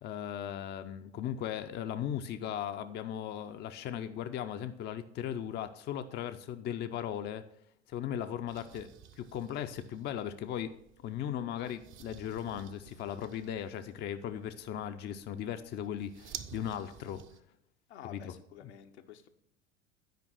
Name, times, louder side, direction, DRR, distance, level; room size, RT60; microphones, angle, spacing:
voice 1, 0.0-7.4 7.9-8.9 9.2-10.7 11.0-17.2 18.0-18.3, left 10 dB, 30° left, 8 dB, 0.6 m, -37 dB
sound 1, 8.5-17.4, right 8 dB, 35° right, 0.7 m, -52 dB
voice 2, 17.9-19.3, left 9 dB, 70° left, 6 dB, 0.9 m, -50 dB
9.3 x 5.2 x 6.1 m, 0.72 s
figure-of-eight pair, 75°, 35 cm